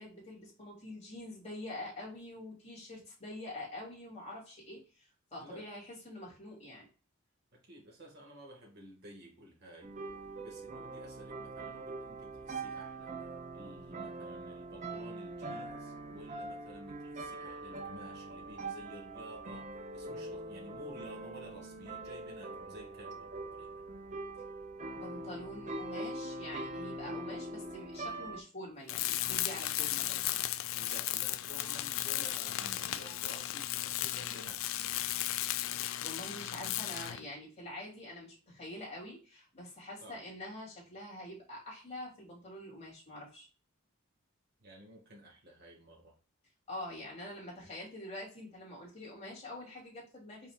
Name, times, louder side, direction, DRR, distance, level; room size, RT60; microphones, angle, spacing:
voice 1, 0.0-6.9 24.9-30.2 35.6-43.5 46.7-50.5, left 1 dB, 30° left, -5 dB, 2.6 m, -46 dB
voice 2, 5.4-5.7 7.5-9.9 10.4-13.2 13.5-23.8 30.7-35.1 40.0-40.2 44.6-46.1, equal, 50° right, -1 dB, 1.6 m, -52 dB
sound 1, 9.8-28.4, right 2 dB, 35° right, 0.6 m, -43 dB
Tools, 28.9-37.3, left 14 dB, 70° left, 0.3 m, -35 dB
5.5 x 4.2 x 2.3 m, 0.36 s
head